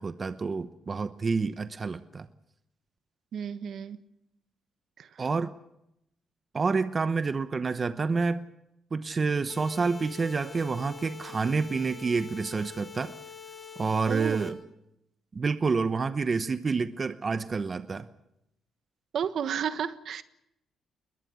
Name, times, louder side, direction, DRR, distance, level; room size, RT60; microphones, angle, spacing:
voice 1, 0.0-2.3 5.2-5.5 6.5-8.4 8.9-13.1 13.8-14.5 15.3-18.1, right 4 dB, 35° right, 11 dB, 0.9 m, -28 dB
voice 2, 3.3-4.0 5.0-5.1 14.1-14.5 19.1-20.2, right 8 dB, 65° right, 12 dB, 1.3 m, -32 dB
sound 1, 9.5-14.5, left 6 dB, 45° left, 5.1 m, -45 dB
21.0 x 20.0 x 8.3 m, 0.84 s
cardioid pair, 90°, 0 cm